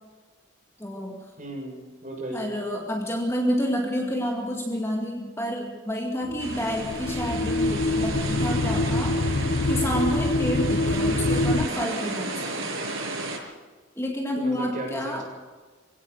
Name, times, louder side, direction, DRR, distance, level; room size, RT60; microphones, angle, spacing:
voice 1, 0.8-1.2 2.3-9.2 9.7-12.7 14.0-15.2, equal, 15° left, 0 dB, 2.2 m, -29 dB
voice 2, 1.4-2.5 8.3-8.6 14.4-15.2, right 1 dB, 40° right, 0 dB, 7.3 m, -36 dB
sound 1, 6.3-11.7, left 2 dB, 55° left, 0.6 m, -25 dB
sound 2, 6.4-13.4, right 2 dB, 90° right, 6.6 m, -33 dB
23.0 x 17.0 x 6.7 m, 1.3 s
head